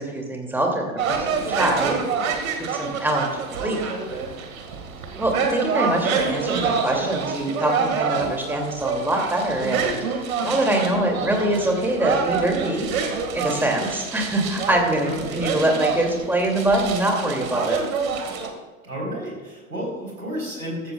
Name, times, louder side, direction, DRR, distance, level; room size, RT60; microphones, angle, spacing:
voice 1, 0.0-2.1 2.7-3.8 5.2-10.0 10.4-15.1 15.3-17.8, right 1 dB, 5° right, 0 dB, 2.6 m, -24 dB
sound 1, 1.0-18.5, right 5 dB, 60° right, 2.1 m, -27 dB
voice 2, 5.6-5.9 15.0-15.4 18.8-20.9, equal, 90° right, -2 dB, 4.3 m, -32 dB
15.0 x 14.0 x 2.4 m, 1.4 s
figure-of-eight pair, 90°, 45 cm